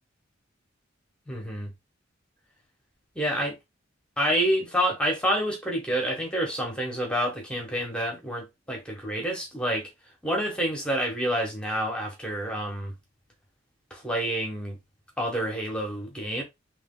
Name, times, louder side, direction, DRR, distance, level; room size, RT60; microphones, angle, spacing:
voice 1, 1.3-1.7 3.1-3.6 4.2-9.9 10.2-13.0 13.9-14.8 15.2-16.4, equal, 5° left, 1.3 m, -28 dB
3.4 x 3.2 x 3.7 m
head